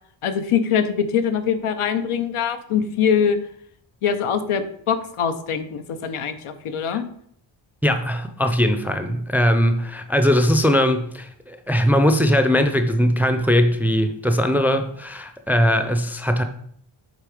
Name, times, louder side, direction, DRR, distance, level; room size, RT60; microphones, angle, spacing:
voice 1, 0.2-3.4 4.0-7.0, left 7 dB, 85° left, 9 dB, 0.9 m, -23 dB
voice 2, 7.8-16.4, equal, 5° right, 7 dB, 0.4 m, -20 dB
8.3 x 3.8 x 4.9 m, 0.66 s
wide cardioid pair, 150°, 49 cm